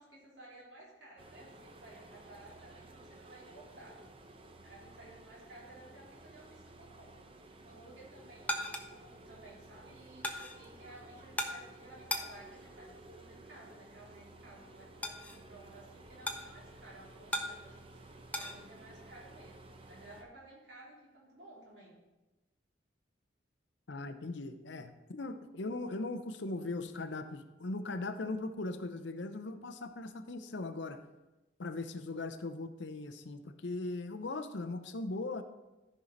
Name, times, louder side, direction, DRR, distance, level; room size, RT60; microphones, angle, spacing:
voice 1, 0.0-4.0 4.6-7.2 7.6-22.0, right 2 dB, 70° right, -5 dB, 3.5 m, -55 dB
sound 1, 1.2-20.2, right 2 dB, 30° right, 0.7 m, -54 dB
sound 2, 7.9-18.6, left 1 dB, 10° left, 0.6 m, -42 dB
voice 2, 23.9-31.0 31.6-35.4, left 2 dB, 75° left, 9 dB, 0.7 m, -39 dB
13.5 x 5.6 x 3.9 m, 1.1 s
head